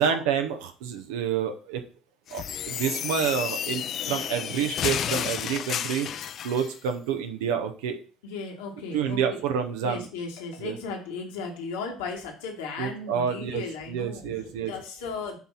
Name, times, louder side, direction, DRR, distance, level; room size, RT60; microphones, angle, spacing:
voice 1, 0.0-1.8 2.3-6.1 6.4-8.0 8.9-10.1 10.6-10.8 12.8-14.7, right 8 dB, 85° right, 7 dB, 0.8 m, -28 dB
sound 1, 2.3-6.7, left 9 dB, 60° left, 0.4 m, -31 dB
voice 2, 8.2-9.4 9.8-15.4, left 4 dB, 85° left, 1 dB, 1.6 m, -36 dB
7.2 x 3.0 x 5.6 m, 0.38 s
hypercardioid pair, 65°, 0 cm